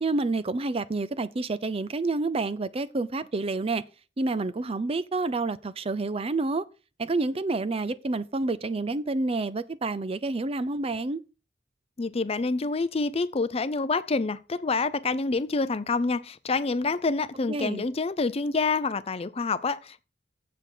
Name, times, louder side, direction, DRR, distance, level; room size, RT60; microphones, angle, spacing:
voice 1, 0.0-3.8 4.2-6.6 7.0-11.2 17.5-17.8, right 3 dB, 30° right, 0.5 m, -28 dB
voice 2, 12.0-20.0, left 3 dB, 35° left, 0.5 m, -27 dB
7.6 x 6.0 x 6.6 m
head